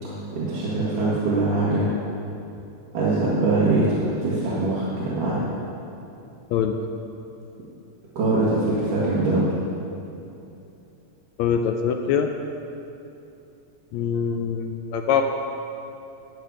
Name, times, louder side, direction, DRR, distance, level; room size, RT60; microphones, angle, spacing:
voice 1, 0.0-1.9 2.9-5.4 8.2-9.4, right 2 dB, 90° right, -9 dB, 3.3 m, -23 dB
voice 2, 11.4-12.3 13.9-15.2, left 7 dB, 80° left, 5 dB, 1.7 m, -23 dB
14.5 x 8.2 x 5.0 m, 2.8 s
omnidirectional pair, 3.6 m